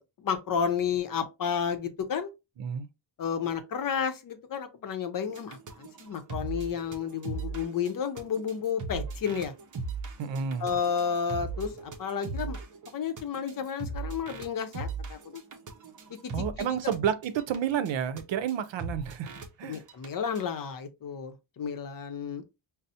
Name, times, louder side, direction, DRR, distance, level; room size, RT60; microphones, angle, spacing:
voice 1, 0.0-2.3 3.2-9.5 10.6-12.6 12.9-15.4 16.6-16.8 19.6-22.4, left 7 dB, 50° left, 0.6 m, -32 dB
sound 1, 5.3-17.0 17.2-17.6 17.9-18.0 18.2-18.3 18.5-18.6 18.8-19.5 19.7-20.1 20.4-20.5, right 3 dB, 45° right, 0.7 m, -38 dB
voice 2, 10.2-10.7 16.3-19.3 19.6-19.8, right 8 dB, 85° right, 0.6 m, -30 dB
5.4 x 2.0 x 2.7 m
wide cardioid pair, 160°, 45 cm